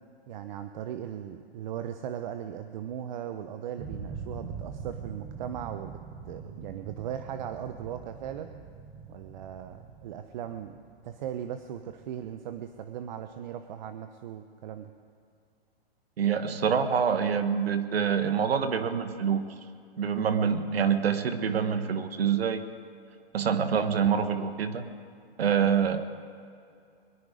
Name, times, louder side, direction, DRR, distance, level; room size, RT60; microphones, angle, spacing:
voice 1, 0.3-6.0 6.2-8.5 9.1-10.8 11.0-14.9, right 9 dB, 50° right, 8 dB, 0.8 m, -38 dB
sound 1, 3.8-12.6, right 5 dB, 25° right, 1.1 m, -43 dB
voice 2, 16.2-19.5 20.0-22.6 23.3-24.8 25.4-26.0, right 7 dB, 80° right, 10 dB, 1.2 m, -26 dB
22.0 x 11.5 x 5.0 m, 2.4 s
hypercardioid pair, 140°, 30 cm